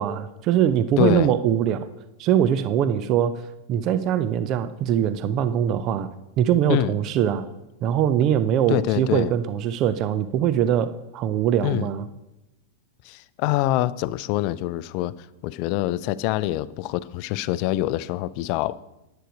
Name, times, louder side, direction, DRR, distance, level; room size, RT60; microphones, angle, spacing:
voice 1, 0.0-1.9 2.2-3.4 3.7-6.1 6.4-7.5 7.8-12.0, right 10 dB, 40° right, 0.5 m, -22 dB
voice 2, 1.0-1.3 6.7-6.9 8.7-9.3 11.6-11.9 13.0-18.8, left 15 dB, 45° left, 0.4 m, -25 dB
10.0 x 7.8 x 5.1 m
figure-of-eight pair, 95°, 0 cm